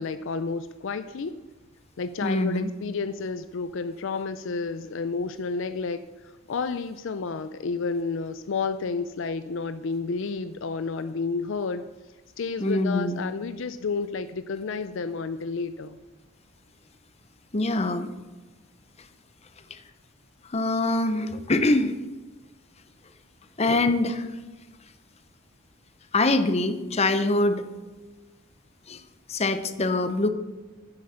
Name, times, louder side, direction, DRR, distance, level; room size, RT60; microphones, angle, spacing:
voice 1, 0.0-1.4 2.0-11.8 12.4-16.0, left 4 dB, 60° left, 12 dB, 0.4 m, -31 dB
voice 2, 2.2-2.7 12.6-13.2 17.5-18.1 19.7-19.8 20.5-22.0 23.6-24.3 26.1-27.6 28.9-29.0 29.3-30.3, left 2 dB, 30° left, 10 dB, 0.7 m, -24 dB
9.9 x 8.0 x 6.4 m, 1.2 s
head